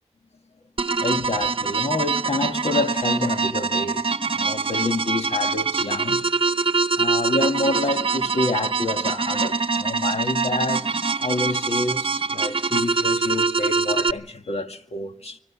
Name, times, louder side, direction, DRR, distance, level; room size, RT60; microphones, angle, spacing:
sound 1, 0.8-14.1, right 4 dB, 50° right, 0.9 m, -24 dB
voice 1, 0.9-4.1 4.4-6.2 7.0-10.9 11.2-15.4, left 2 dB, 65° left, 2.3 m, -28 dB
25.0 x 17.5 x 7.3 m
cardioid pair, 60°, 12 cm